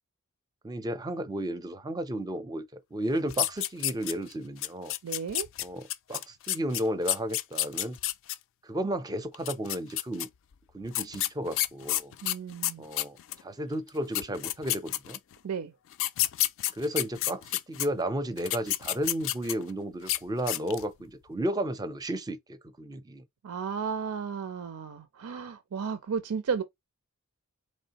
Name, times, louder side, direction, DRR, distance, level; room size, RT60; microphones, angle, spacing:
voice 1, 0.6-2.6 2.9-4.9 5.6-5.8 6.1-8.0 8.6-10.3 10.7-12.1 12.8-15.2 16.7-23.2, right 1 dB, 15° right, 0.5 m, -33 dB
sound 1, 3.3-4.3 4.6-8.4 9.3-10.3 10.9-13.4 13.9-14.0 14.1-15.4 15.9-17.9 18.4-19.7 20.0-20.2 20.5-20.9, left 14 dB, 60° left, 0.3 m, -30 dB
voice 2, 5.0-5.5 12.2-12.8 15.4-15.7 23.4-26.6, right 6 dB, 85° right, 0.5 m, -33 dB
4.2 x 3.1 x 2.8 m
head